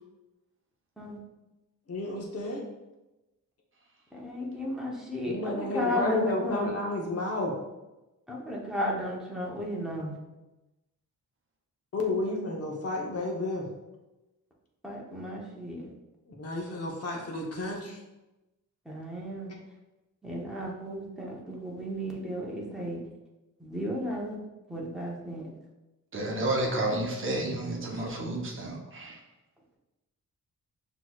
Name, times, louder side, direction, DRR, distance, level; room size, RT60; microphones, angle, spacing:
voice 1, 1.9-2.6 5.3-7.5 11.9-13.7 16.3-18.0 27.9-28.0, left 2 dB, 45° left, 0 dB, 0.8 m, -31 dB
voice 2, 4.1-6.7 8.3-10.2 14.8-15.9 18.9-19.5 20.2-23.0 23.6-24.4 24.7-25.5, equal, ahead, -4 dB, 0.8 m, -34 dB
voice 3, 26.1-29.2, right 1 dB, 40° right, 0 dB, 0.7 m, -31 dB
6.0 x 3.0 x 2.3 m, 1.0 s
wide cardioid pair, 165°, 33 cm